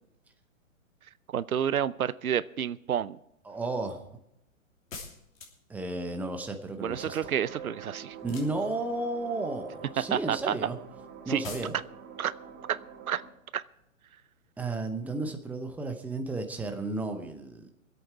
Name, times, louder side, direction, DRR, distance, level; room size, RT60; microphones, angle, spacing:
voice 1, 1.3-3.2 6.8-8.2 10.0-10.5 11.3-11.4 12.2-12.3 12.7-12.8 13.1-13.2 13.5-13.6, right 9 dB, 90° right, 18 dB, 0.6 m, -29 dB
voice 2, 3.5-4.0 5.7-7.3 8.2-10.8 11.3-11.7 14.6-17.7, right 2 dB, 5° right, 5 dB, 0.8 m, -33 dB
sound 1, 4.9-5.8 8.2-9.0 11.4-11.8, left 4 dB, 70° left, 3.2 m, -43 dB
sound 2, 6.8-13.3, right 6 dB, 45° right, 4.1 m, -46 dB
24.0 x 8.4 x 4.5 m, 0.81 s
hypercardioid pair, 125°, 41 cm